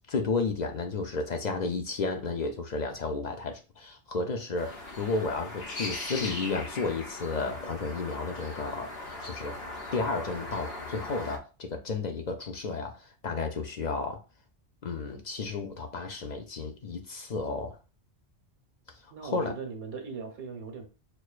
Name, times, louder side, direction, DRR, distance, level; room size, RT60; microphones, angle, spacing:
voice 1, 0.1-8.9 9.2-9.6 9.9-14.2 14.8-17.8 19.0-19.5, left 4 dB, 50° left, 0.6 m, -32 dB
sound 1, 4.5-11.4, left 2 dB, 65° left, 1.0 m, -39 dB
voice 2, 19.1-20.9, right 5 dB, 65° right, 1.2 m, -39 dB
6.3 x 2.3 x 2.4 m
omnidirectional pair, 1.1 m